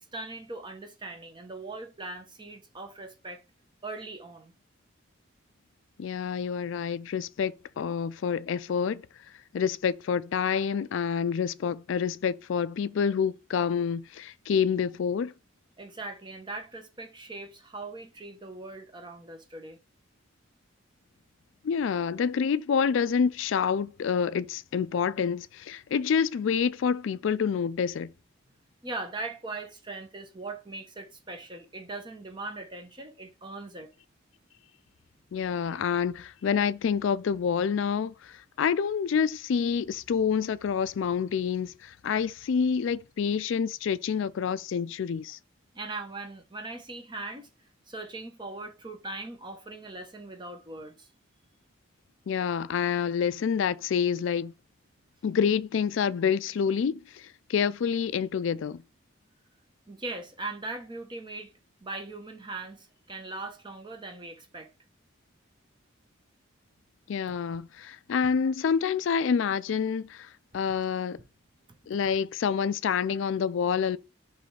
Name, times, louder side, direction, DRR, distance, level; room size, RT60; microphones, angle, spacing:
voice 1, 0.0-3.4 3.8-4.5 15.8-19.8 21.8-22.0 28.8-33.9 45.7-47.5 47.9-51.1 59.9-61.5 61.8-64.7 71.7-71.8, right 2 dB, 20° right, 0.9 m, -40 dB
voice 2, 6.0-9.0 9.5-15.3 21.6-28.1 35.3-45.4 52.3-54.5 55.2-58.8 67.1-71.2 71.9-74.0, left 6 dB, 65° left, 0.3 m, -27 dB
5.2 x 3.3 x 5.5 m
head